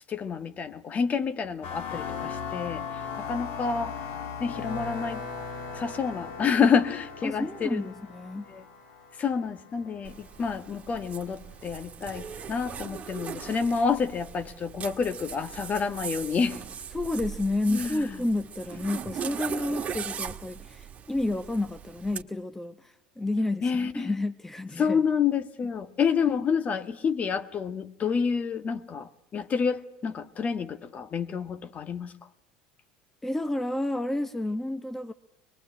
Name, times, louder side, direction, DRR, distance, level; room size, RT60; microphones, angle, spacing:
voice 1, 0.1-2.8 3.2-3.9 4.4-5.2 5.8-7.9 8.5-8.6 9.2-16.6 17.7-18.1 23.6-24.1 24.8-32.1, left 6 dB, 35° left, 11 dB, 1.5 m, -28 dB
sound 1, 1.6-10.2, left 6 dB, 60° left, 6.4 m, -38 dB
voice 2, 7.2-8.5 16.9-25.0 33.2-35.1, left 2 dB, 10° left, 10 dB, 1.0 m, -30 dB
Zipper (clothing), 10.0-22.2, right 7 dB, 35° right, 1.8 m, -39 dB
24.0 x 21.5 x 9.9 m, 0.76 s
hypercardioid pair, 75°, 4 cm